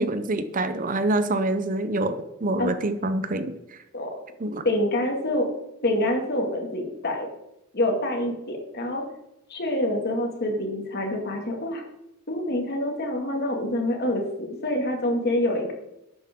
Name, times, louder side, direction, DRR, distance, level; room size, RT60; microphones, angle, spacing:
voice 1, 0.0-3.5 4.4-4.6, right 2 dB, 40° right, 11 dB, 0.7 m, -26 dB
voice 2, 4.6-5.5 5.8-7.3 7.7-9.0 9.5-11.8 12.3-15.7, left 1 dB, 50° left, 2 dB, 2.2 m, -26 dB
11.5 x 8.7 x 3.7 m, 0.87 s
head